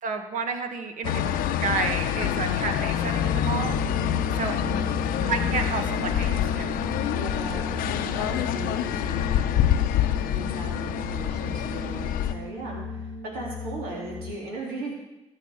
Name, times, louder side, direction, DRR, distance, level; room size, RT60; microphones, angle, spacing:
voice 1, 0.0-3.8 4.4-4.6 5.3-6.7, right 5 dB, 65° right, 6 dB, 1.7 m, -31 dB
sound 1, 1.0-12.3, left 10 dB, 80° left, 0.8 m, -27 dB
sound 2, 3.2-14.3, left 3 dB, 35° left, 1.0 m, -34 dB
voice 2, 4.6-4.9 7.1-7.7 8.1-9.4 10.2-14.9, right 2 dB, 80° right, -2 dB, 3.3 m, -37 dB
13.5 x 6.4 x 8.3 m, 0.99 s
hypercardioid pair, 55°, 15 cm